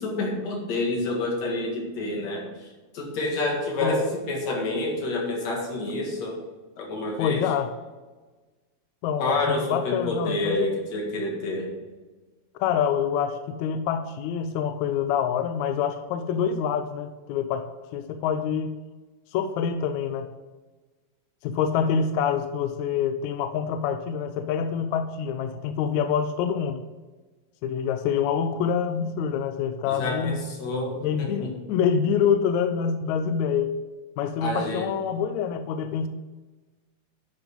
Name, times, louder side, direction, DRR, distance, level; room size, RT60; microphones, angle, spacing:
voice 1, 0.0-2.5 2.9-6.4 6.8-7.5 9.2-11.7 29.9-31.5 34.4-34.9, left 2 dB, 60° left, -1 dB, 2.9 m, -28 dB
voice 2, 7.2-7.7 9.0-10.7 12.6-17.6 17.9-18.7 19.3-20.3 21.4-26.8 27.6-30.4 31.0-33.7 34.2-36.1, left 7 dB, 85° left, 10 dB, 1.6 m, -26 dB
10.5 x 5.4 x 5.2 m, 1.3 s
omnidirectional pair, 3.7 m